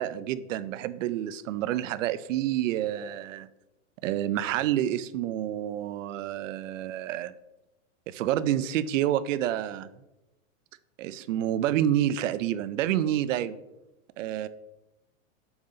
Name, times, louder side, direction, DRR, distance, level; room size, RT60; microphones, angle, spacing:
voice 1, 0.0-3.5 4.0-7.3 8.1-9.9 11.0-13.6 14.2-14.5, right 12 dB, 70° right, 16 dB, 0.5 m, -28 dB
7.0 x 4.0 x 3.8 m, 0.96 s
supercardioid pair, 160°, 40 cm